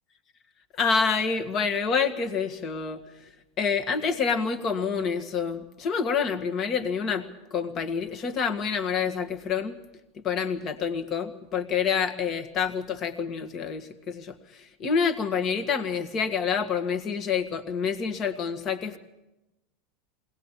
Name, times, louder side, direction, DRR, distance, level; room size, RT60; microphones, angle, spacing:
voice 1, 0.8-3.0 3.6-7.3 7.5-9.8 10.2-14.3 14.8-19.0, left 6 dB, 40° left, 6 dB, 1.8 m, -27 dB
21.5 x 19.0 x 7.5 m, 0.97 s
hypercardioid pair, 90°, 0 cm